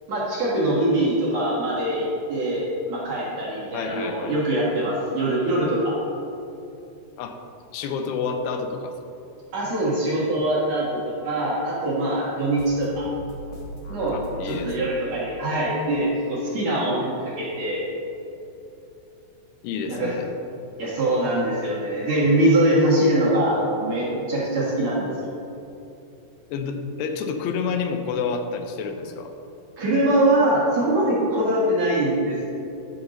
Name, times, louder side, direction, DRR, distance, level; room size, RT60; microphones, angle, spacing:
voice 1, 0.1-6.0 9.5-13.1 13.9-14.2 14.4-17.8 19.9-20.1 20.8-25.1 29.8-32.5, right 1 dB, 55° right, -8 dB, 2.3 m, -23 dB
voice 2, 3.7-4.3 7.2-7.4 7.7-8.9 14.1-14.9 19.6-20.2 26.5-29.3, left 5 dB, 85° left, 6 dB, 2.8 m, -29 dB
sound 1, 12.5-14.9, right 1 dB, 60° left, 2.3 m, -38 dB
11.5 x 5.8 x 3.9 m, 2.8 s
omnidirectional pair, 4.7 m